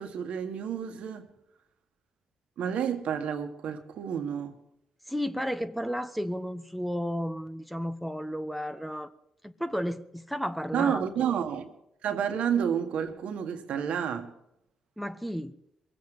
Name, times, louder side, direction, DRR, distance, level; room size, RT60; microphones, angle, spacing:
voice 1, 0.0-1.3 2.6-4.6 10.7-11.7 12.0-14.3, right 8 dB, 75° right, 1.8 m, -30 dB
voice 2, 5.1-9.1 9.4-11.4 15.0-15.5, equal, ahead, 1.1 m, -33 dB
21.5 x 8.3 x 7.9 m
cardioid pair, 70°, 2 cm